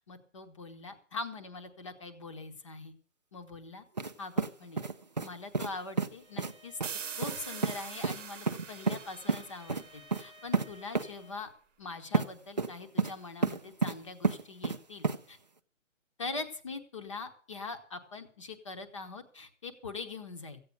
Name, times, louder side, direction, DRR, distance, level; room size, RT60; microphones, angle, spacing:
voice 1, 0.1-2.9 3.3-3.8 4.2-4.8 5.2-6.8 7.2-11.5 11.8-15.4 16.2-20.6, left 3 dB, 25° left, 7 dB, 1.0 m, -42 dB
sound 1, 4.0-4.1 4.4-5.3 5.5-5.7 6.0-6.1 6.4-6.5 6.8-6.9 7.2-7.4 7.6-7.8 8.0-8.2 8.5-9.0 9.3-9.4 9.7-9.8 10.1-10.2 10.5-10.7 10.9-11.1 12.1-12.3 12.6-13.1 13.4-13.9 14.2-14.8 15.0-15.2, right 4 dB, 35° right, 0.5 m, -29 dB
Bowed string instrument, 6.2-11.4, equal, 5° right, 0.9 m, -56 dB
sound 2, 6.8-10.4, right 7 dB, 65° right, 1.0 m, -43 dB
15.0 x 8.5 x 6.6 m, 0.43 s
hypercardioid pair, 170°, 40 cm